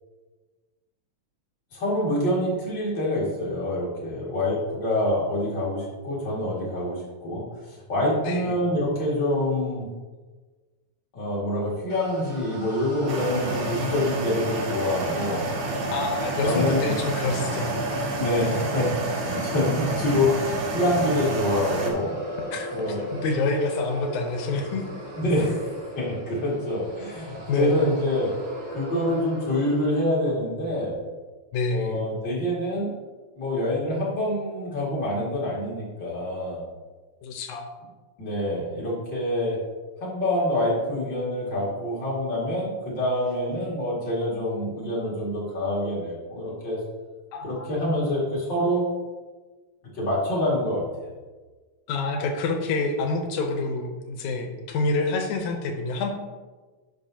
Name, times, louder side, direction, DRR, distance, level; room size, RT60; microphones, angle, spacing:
voice 1, 1.7-9.9 11.1-15.4 16.4-16.9 18.2-22.1 22.7-23.0 25.2-28.3 28.7-31.0 31.7-32.9 33.4-36.6 38.2-39.6 40.0-46.8 47.4-48.9 49.9-50.8, left 1 dB, 40° left, -6 dB, 2.5 m, -26 dB
voice 2, 8.2-8.6 15.9-17.8 22.5-22.7 23.1-24.9 27.5-27.9 31.5-32.1 37.2-37.7 47.3-47.7 51.9-56.1, left 3 dB, 90° left, 3 dB, 2.3 m, -27 dB
sound 1, 11.9-30.2, equal, 35° right, 1.5 m, -38 dB
sound 2, 13.1-21.9, right 2 dB, 75° right, 2.3 m, -29 dB
10.5 x 5.4 x 2.8 m, 1.3 s
omnidirectional pair, 3.3 m